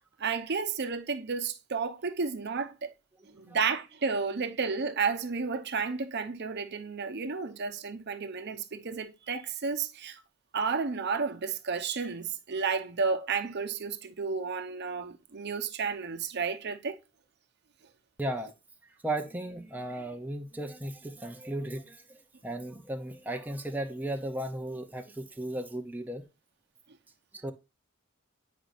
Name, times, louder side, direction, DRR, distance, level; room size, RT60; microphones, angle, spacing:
voice 1, 0.2-2.9 3.3-10.2 10.5-17.0, right 5 dB, 55° right, 0.8 m, -32 dB
voice 2, 18.2-18.5 19.0-26.2 27.3-27.5, right 1 dB, 10° right, 0.6 m, -35 dB
8.7 x 5.1 x 2.5 m
head